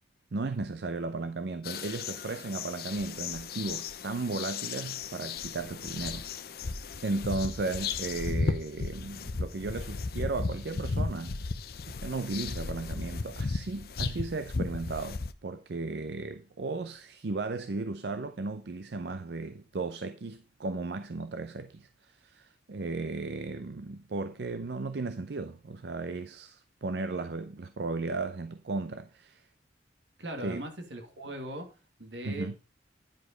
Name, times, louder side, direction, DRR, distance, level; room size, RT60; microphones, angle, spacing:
voice 1, 0.3-6.6 7.0-11.4 11.9-29.5 30.4-30.6 32.2-32.5, right 3 dB, 70° right, 0.5 m, -35 dB
sound 1, 1.6-15.3, left 4 dB, 60° left, 0.6 m, -35 dB
voice 2, 30.2-31.7 32.0-32.6, right 1 dB, 85° right, 2.0 m, -39 dB
10.0 x 4.9 x 5.1 m
head